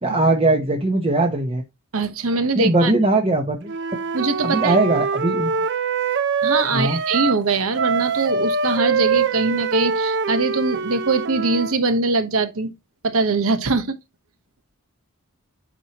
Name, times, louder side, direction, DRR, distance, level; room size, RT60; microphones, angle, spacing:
voice 1, 0.0-1.6 2.5-3.7 4.4-5.5 6.7-7.0, right 2 dB, 25° right, 0.8 m, -20 dB
voice 2, 1.9-2.9 4.1-4.8 6.4-12.7 13.0-13.9, right 3 dB, 70° right, 1.0 m, -22 dB
Wind instrument woodwind instrument, 3.7-7.4 7.7-11.8, right 5 dB, 50° right, 0.6 m, -24 dB
8.9 x 4.4 x 2.9 m
head